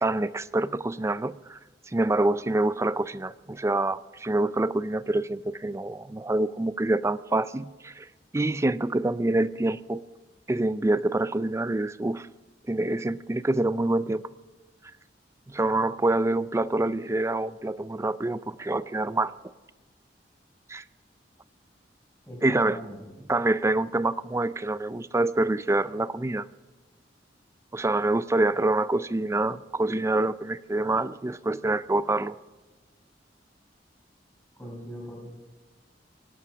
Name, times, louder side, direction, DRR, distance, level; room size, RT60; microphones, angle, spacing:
voice 1, 0.0-1.6 1.9-8.1 8.3-10.0 10.5-12.3 12.7-14.2 15.5-19.3 20.7-20.8 22.4-22.8 23.3-26.4 27.7-32.3, right 2 dB, 15° right, 15 dB, 0.4 m, -26 dB
voice 2, 22.3-23.0 34.6-35.3, equal, 10° left, -2 dB, 5.2 m, -40 dB
24.5 x 8.6 x 6.0 m, 1.2 s
head